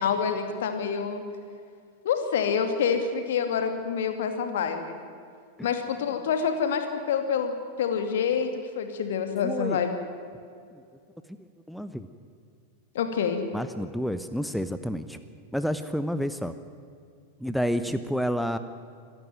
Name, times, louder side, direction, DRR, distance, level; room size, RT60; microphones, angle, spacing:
voice 1, 0.0-1.2 2.0-5.0 5.6-9.9 12.9-13.4, left 6 dB, 60° left, 7 dB, 2.7 m, -27 dB
voice 2, 9.4-9.8 10.7-10.8 11.7-12.1 13.5-15.2 15.5-16.5 17.4-18.6, equal, ahead, 11 dB, 1.0 m, -29 dB
26.0 x 14.5 x 9.3 m, 2.3 s
figure-of-eight pair, 90°, 0 cm